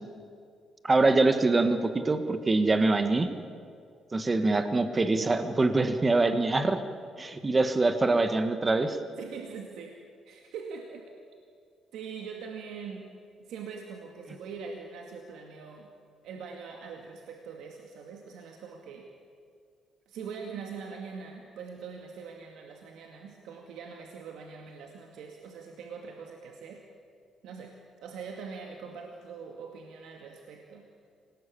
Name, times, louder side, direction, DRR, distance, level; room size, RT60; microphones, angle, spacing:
voice 1, 0.8-3.3 4.1-6.8 7.2-9.0, right 3 dB, 25° right, 9 dB, 1.6 m, -24 dB
voice 2, 9.2-9.9 10.2-11.1 11.9-13.1 13.4-15.9 16.2-19.1 20.1-26.8 27.4-27.8 28.0-31.1, right 5 dB, 85° right, 2 dB, 2.2 m, -42 dB
26.5 x 19.0 x 8.6 m, 2.3 s
cardioid pair, 90°, 0 cm